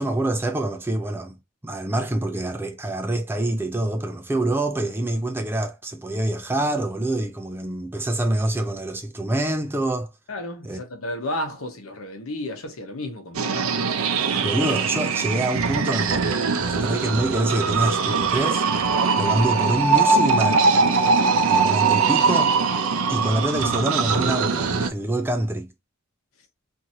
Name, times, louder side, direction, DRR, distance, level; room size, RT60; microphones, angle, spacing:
voice 1, 0.0-1.4 1.6-10.1 10.6-10.8 14.4-16.3 16.6-18.6 19.2-20.7 21.5-22.6 23.1-25.7, right 1 dB, 10° right, 0.3 m, -26 dB
voice 2, 10.3-13.9, left 1 dB, 80° left, 0.9 m, -32 dB
sound 1, 13.3-24.9, right 4 dB, 85° right, 0.5 m, -21 dB
2.9 x 2.6 x 2.6 m
head